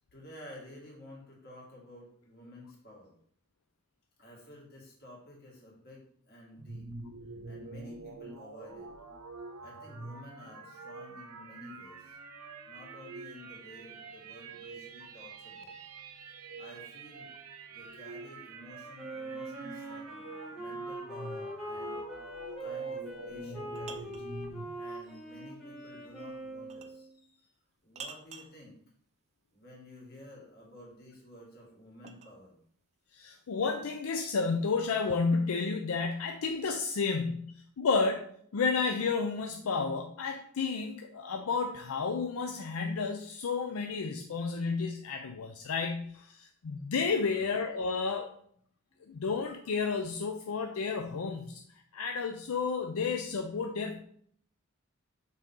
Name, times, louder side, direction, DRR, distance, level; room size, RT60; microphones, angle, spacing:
voice 1, 0.1-3.2 4.2-6.9 7.4-8.9 9.6-12.2 12.7-16.0 16.6-17.4 17.7-20.2 20.6-22.0 22.6-24.3 24.8-27.5 27.8-28.8 29.5-32.6 47.2-47.5, left 1 dB, 45° left, -3 dB, 2.1 m, -52 dB
sound 1, 6.6-24.7, right 3 dB, 85° right, 0.8 m, -46 dB
Wind instrument woodwind instrument, 19.0-27.1, right 1 dB, ahead, 1.4 m, -41 dB
sound 2, 23.3-24.3 26.7-27.0 28.0-28.6 30.8-32.4, right 5 dB, 30° right, 0.4 m, -48 dB
voice 2, 33.1-38.3 38.5-48.3 49.1-51.6 51.9-54.0, left 4 dB, 70° left, 5 dB, 0.5 m, -31 dB
6.1 x 4.2 x 3.7 m, 0.63 s
head